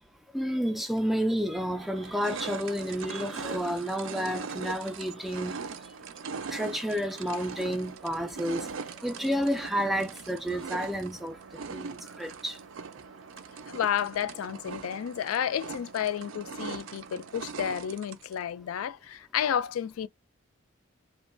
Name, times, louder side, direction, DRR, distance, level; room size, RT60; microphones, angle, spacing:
voice 1, 0.3-5.6 6.5-8.7 9.0-11.4 11.7-12.6, equal, ahead, 0.3 m, -30 dB
sound 1, 1.0-1.1 1.6-18.4, right 5 dB, 65° right, 0.4 m, -41 dB
voice 2, 13.7-20.1, left 9 dB, 80° left, 0.3 m, -31 dB
2.9 x 2.2 x 2.5 m
head